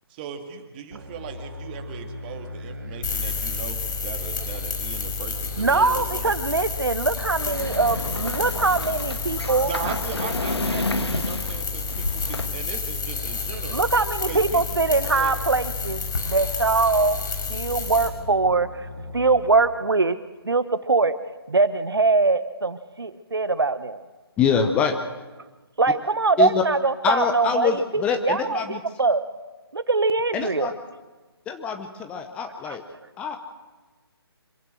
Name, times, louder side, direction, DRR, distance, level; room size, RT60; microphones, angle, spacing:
voice 1, 0.1-6.3 9.6-13.8 14.3-15.3, right 7 dB, 20° right, 5 dB, 2.3 m, -37 dB
sound 1, 0.9-19.5, left 2 dB, 50° right, 3.6 m, -38 dB
sound 2, 3.0-18.1, left 5 dB, 50° left, 5.0 m, -31 dB
voice 2, 5.6-9.7 13.7-17.2 17.5-18.7 19.1-20.1 20.4-21.1 21.5-24.0 25.8-28.6 29.0-29.2 29.7-30.7, right 3 dB, 65° right, 13 dB, 1.1 m, -22 dB
sound 3, 7.2-12.5, left 2 dB, 75° left, 1.8 m, -31 dB
voice 3, 24.4-25.0 26.4-26.6 27.0-28.8 30.3-30.7 31.5-32.8 33.2-33.4, left 6 dB, 10° left, 6 dB, 0.8 m, -24 dB
25.5 x 16.0 x 7.8 m, 1.2 s
figure-of-eight pair, 145°, 13 cm